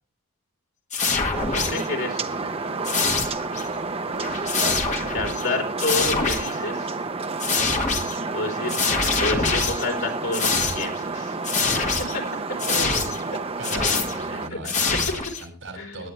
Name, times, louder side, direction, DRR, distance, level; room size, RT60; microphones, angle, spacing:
sound 1, 0.9-1.9 2.8-3.7 4.0-5.5 5.8-6.5 7.4-8.2 8.7-10.0 10.3-11.0 11.4-12.2 12.6-13.2 13.6-14.2 14.6-15.4, left 4 dB, 35° left, 1.9 m, -25 dB
sound 2, 1.3-14.5, right 3 dB, 25° right, 0.7 m, -30 dB
voice 1, 1.5-2.5 5.1-6.9 8.3-8.8 9.2-11.4 14.3-14.4 15.7-16.1, left 2 dB, 70° left, 1 dB, 4.3 m, -29 dB
voice 2, 12.6-13.1 13.6-16.1, right 1 dB, 65° right, 3 dB, 6.2 m, -36 dB
17.5 x 10.5 x 3.2 m, 0.36 s
head